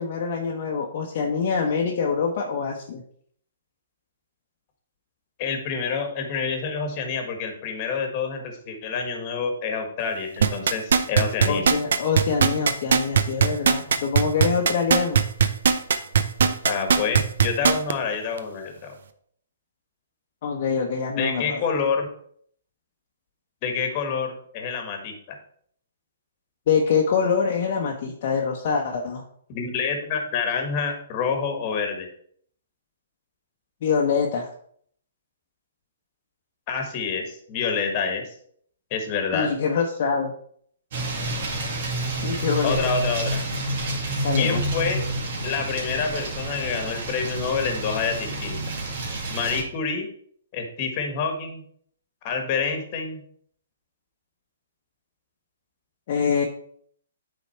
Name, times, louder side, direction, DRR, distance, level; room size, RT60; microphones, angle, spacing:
voice 1, 0.0-3.0 11.5-15.2 20.4-21.6 26.7-29.2 33.8-34.5 39.3-40.3 42.2-42.9 44.2-44.6 56.1-56.4, left 5 dB, 50° left, -1 dB, 0.9 m, -25 dB
voice 2, 5.4-11.6 16.6-19.0 21.2-22.1 23.6-25.4 29.5-32.1 36.7-38.2 38.9-39.5 42.6-43.4 44.4-45.0 45.4-48.6 49.3-50.1 50.5-51.6 52.2-53.2, left 5 dB, 35° left, 5 dB, 1.5 m, -27 dB
sound 1, 10.4-17.9 18.4-18.5, right 6 dB, 70° right, 0.6 m, -18 dB
sound 2, 40.9-49.6, right 1 dB, 55° right, 2.1 m, -29 dB
8.2 x 4.1 x 4.4 m, 0.63 s
hypercardioid pair, 150°, 0 cm